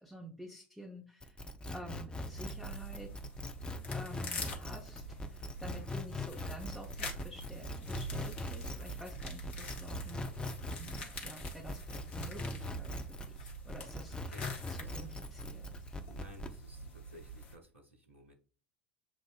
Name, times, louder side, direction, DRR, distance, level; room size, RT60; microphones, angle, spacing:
voice 1, 0.0-3.1 3.9-10.3 10.8-14.4 14.7-15.7, right 1 dB, ahead, -1 dB, 1.0 m, -49 dB
sound 1, 1.2-13.4 13.7-16.6, left 2 dB, 15° left, 0.6 m, -41 dB
sound 2, 2.2-17.6, right 1 dB, 70° left, 1.0 m, -45 dB
voice 2, 14.3-15.3 16.2-18.3, left 2 dB, 85° right, 3 dB, 0.7 m, -56 dB
7.2 x 2.4 x 2.4 m, 0.39 s
figure-of-eight pair, 70°, 7 cm